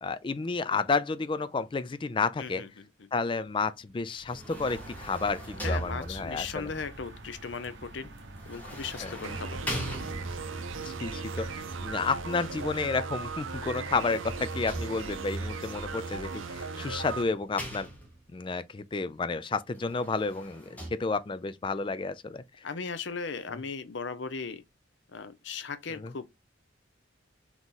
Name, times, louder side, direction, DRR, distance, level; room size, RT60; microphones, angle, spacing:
voice 1, 0.0-2.6 3.1-6.7 9.0-9.1 10.8-11.5 11.8-17.9 18.3-22.4, left 4 dB, 25° left, 0.3 m, -31 dB
voice 2, 2.4-3.1 5.6-8.1 8.5-9.6 22.6-24.6 25.1-26.4, left 5 dB, 65° left, 0.6 m, -37 dB
sound 1, 4.1-6.5 8.4-10.6 13.5-15.4 16.4-18.4 19.7-20.9, equal, 10° left, 1.1 m, -40 dB
sound 2, 4.5-12.9, right 2 dB, 65° right, 1.0 m, -47 dB
sound 3, 9.2-17.2, right 4 dB, 85° right, 0.6 m, -37 dB
4.0 x 3.0 x 3.7 m
head